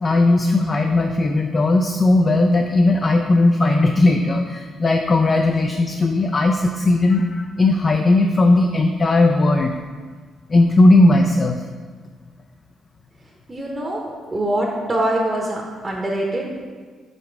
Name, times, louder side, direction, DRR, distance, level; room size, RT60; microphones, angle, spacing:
voice 1, 0.0-9.7 10.5-11.6, left 2 dB, 35° left, 4 dB, 0.4 m, -17 dB
voice 2, 13.5-16.5, right 1 dB, 20° right, -2 dB, 0.8 m, -24 dB
5.1 x 4.7 x 4.6 m, 1.5 s
cardioid pair, 90°, 0 cm